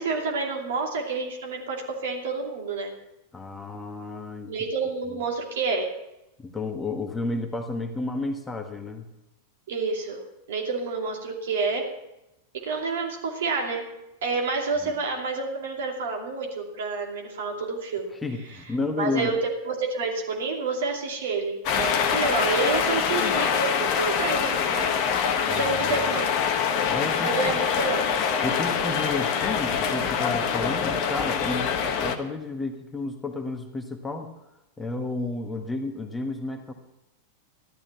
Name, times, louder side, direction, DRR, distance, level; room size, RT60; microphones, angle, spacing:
voice 1, 0.0-2.9 4.5-5.9 9.7-10.2 10.5-11.9 12.5-13.9 14.2-18.1 19.0-24.9 25.2-26.3 27.2-28.1, right 4 dB, 60° right, 1 dB, 2.6 m, -29 dB
voice 2, 3.3-4.5 5.1-5.2 6.4-9.1 14.8-14.9 18.2-19.4 25.5-26.1 26.9-27.5 28.4-34.3 34.8-36.7, left 3 dB, 10° left, 5 dB, 1.5 m, -32 dB
sound 1, 21.6-32.2, left 7 dB, 40° left, 1.2 m, -25 dB
14.0 x 12.0 x 5.8 m, 0.91 s
figure-of-eight pair, 90°, 0 cm